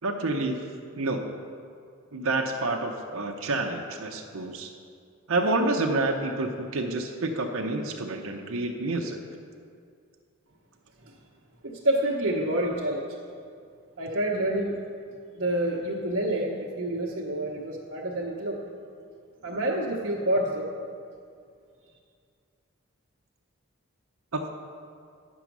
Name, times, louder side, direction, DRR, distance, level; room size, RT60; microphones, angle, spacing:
voice 1, 0.0-0.6 1.0-1.2 2.1-4.7 5.3-9.2 24.3-24.5, right 2 dB, 70° right, 2 dB, 0.7 m, -28 dB
voice 2, 11.6-13.1 14.0-14.8 15.3-18.6 19.4-20.7, right 1 dB, 55° right, -5 dB, 1.0 m, -28 dB
9.5 x 6.1 x 6.0 m, 2.3 s
head